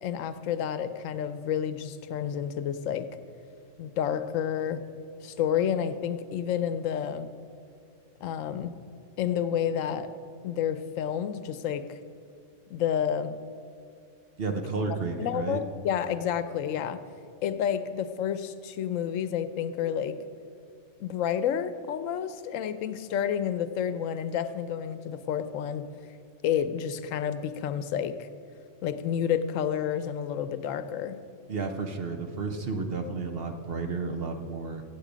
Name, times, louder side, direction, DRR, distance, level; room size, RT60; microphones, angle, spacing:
voice 1, 0.0-3.1 3.8-4.8 5.2-7.3 8.2-8.7 9.2-10.1 10.4-12.0 12.7-13.4 15.2-17.0 17.4-20.2 21.0-25.9 26.4-28.3 28.8-31.2, left 9 dB, 85° left, 12 dB, 1.0 m, -30 dB
voice 2, 14.4-15.6 31.5-34.8, right 4 dB, 55° right, 6 dB, 1.0 m, -32 dB
15.5 x 8.1 x 5.1 m, 2.4 s
omnidirectional pair, 1.3 m